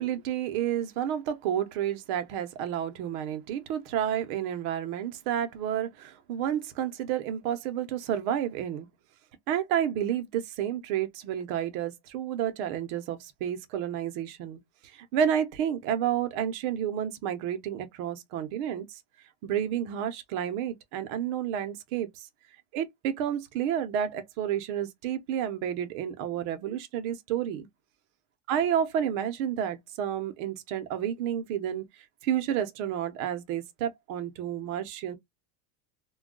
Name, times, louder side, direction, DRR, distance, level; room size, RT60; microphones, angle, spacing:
voice 1, 0.0-8.9 9.5-14.6 14.9-19.0 19.4-22.3 22.7-27.7 28.5-31.9 32.2-35.2, right 9 dB, 60° right, 0.7 m, -30 dB
2.2 x 2.2 x 3.7 m
supercardioid pair, 150°, 44 cm